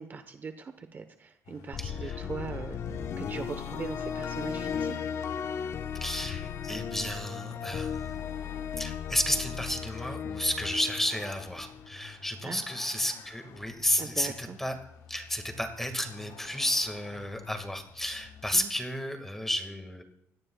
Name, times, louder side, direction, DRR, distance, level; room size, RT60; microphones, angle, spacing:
voice 1, 0.0-5.1 12.4-12.6 14.0-14.6 18.5-18.7, right 5 dB, 35° right, 8 dB, 1.1 m, -40 dB
Vehicle, 1.4-18.7, left 8 dB, 85° left, 1.4 m, -51 dB
sound 1, 1.7-11.9, left 7 dB, 55° left, 1.1 m, -36 dB
voice 2, 1.8-2.2 6.0-14.8 15.1-20.0, equal, 5° left, 5 dB, 1.9 m, -32 dB
25.0 x 17.5 x 2.4 m, 0.77 s
cardioid pair, 145°, 6 cm